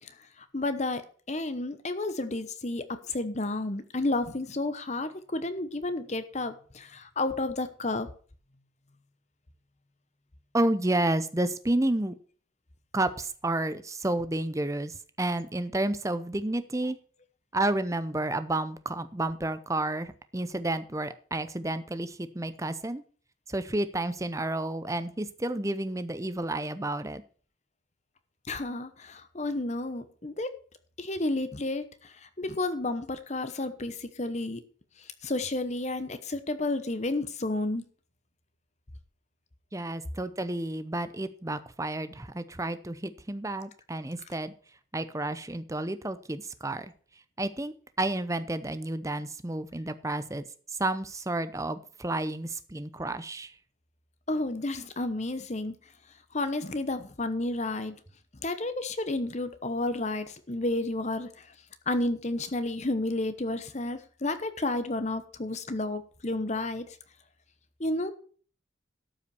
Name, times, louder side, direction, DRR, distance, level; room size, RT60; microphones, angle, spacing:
voice 1, 0.5-1.0 1.3-8.1 28.5-30.5 31.0-31.8 32.4-34.6 35.2-37.8 54.3-55.7 56.3-57.9 58.4-61.3 61.9-66.9 67.8-68.1, left 2 dB, 35° left, 11 dB, 1.0 m, -31 dB
voice 2, 10.5-12.1 12.9-17.0 17.5-23.0 23.5-27.2 39.7-44.5 44.9-46.9 47.4-50.4 50.8-53.5, right 1 dB, 15° right, 12 dB, 0.7 m, -31 dB
12.5 x 5.7 x 6.9 m, 0.43 s
head